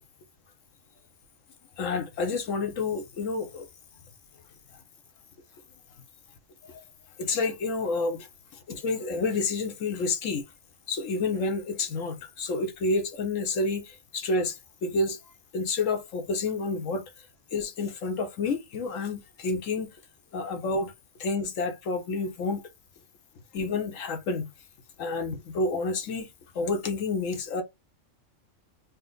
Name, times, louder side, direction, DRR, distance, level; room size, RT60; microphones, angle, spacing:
voice 1, 1.8-3.7 6.7-6.8 7.2-8.3 8.7-10.4 10.9-15.2 15.5-17.0 17.5-19.9 20.3-20.9 21.2-22.6 23.5-24.5 25.0-26.3 26.5-27.6, left 3 dB, 85° left, 1.3 m, -29 dB
4.2 x 2.1 x 3.8 m
omnidirectional pair, 1.3 m